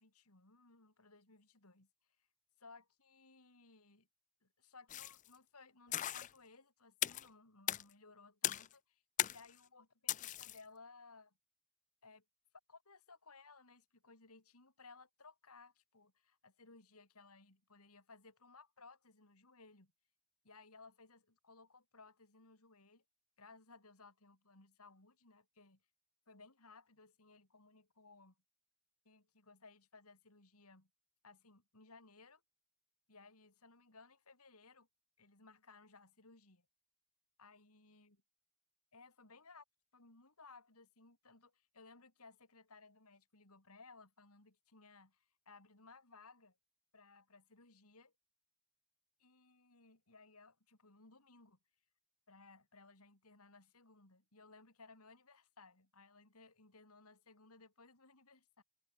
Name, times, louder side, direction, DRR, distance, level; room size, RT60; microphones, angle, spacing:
voice 1, 0.0-1.9 2.6-4.1 4.4-11.3 12.0-12.2 12.7-19.9 20.4-23.0 23.4-25.8 26.3-28.4 29.0-30.9 31.2-32.4 33.1-34.9 35.2-36.7 37.4-38.2 38.9-39.6 39.9-46.6 46.9-48.1 49.2-51.6 52.3-58.6, left 3 dB, 85° left, 4.6 m, -61 dB
sound 1, 4.9-5.3 5.9-6.3 7.0-7.3 7.7-7.8 8.4-8.7 9.2-9.5 10.1-10.6, left 12 dB, 35° left, 0.4 m, -37 dB
head